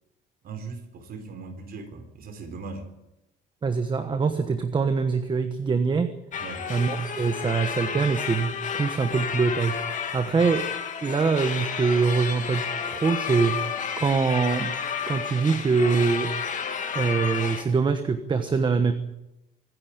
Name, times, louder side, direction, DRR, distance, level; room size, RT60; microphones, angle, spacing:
voice 1, 0.4-2.9 6.4-6.7, right 4 dB, 50° right, 6 dB, 4.0 m, -39 dB
voice 2, 3.6-6.1 6.7-10.6 11.0-13.6 14.0-14.7 15.1-16.3 16.9-18.9, right 5 dB, 25° right, 8 dB, 1.2 m, -24 dB
sound 1, 6.3-17.6, left 7 dB, 40° left, 2.6 m, -31 dB
25.0 x 10.5 x 9.9 m, 0.92 s
cardioid pair, 155°, 20 cm